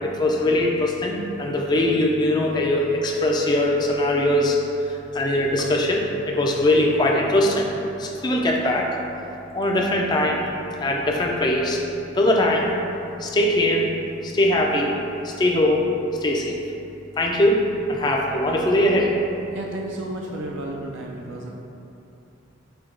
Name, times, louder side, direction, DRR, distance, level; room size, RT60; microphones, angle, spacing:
voice 1, 0.0-4.6 5.1-7.7 8.0-8.9 9.5-10.4 10.8-11.8 12.1-12.7 13.2-13.9 14.2-14.9 15.2-15.8 16.2-16.5 17.2-17.6 17.9-19.1, left 1 dB, 20° left, -1 dB, 0.3 m, -21 dB
voice 2, 19.5-21.5, right 1 dB, 70° right, -1 dB, 0.3 m, -33 dB
4.4 x 2.2 x 3.7 m, 2.9 s
head